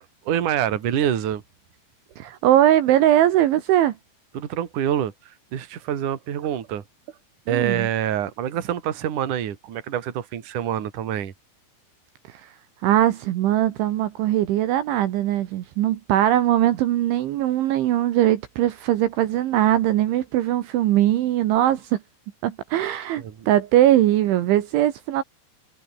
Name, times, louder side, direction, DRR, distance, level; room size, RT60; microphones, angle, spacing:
voice 1, 0.0-1.4 4.3-5.1 5.5-6.8 7.5-11.3 23.2-23.5, right 10 dB, 45° right, 3.3 m, -26 dB
voice 2, 2.2-3.9 7.5-7.9 12.8-22.0 22.4-25.2, right 13 dB, 70° right, 3.6 m, -20 dB
omnidirectional pair, 5.9 m